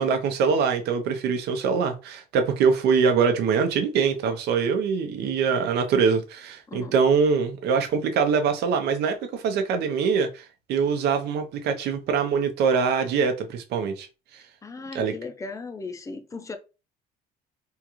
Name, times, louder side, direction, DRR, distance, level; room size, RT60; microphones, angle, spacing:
voice 1, 0.0-10.4 10.7-14.1 14.3-14.4 14.9-15.1, right 5 dB, 75° right, 0.7 m, -23 dB
voice 2, 14.6-16.6, left 3 dB, 20° left, 0.5 m, -37 dB
3.6 x 2.4 x 3.0 m
cardioid pair, 110°, 17 cm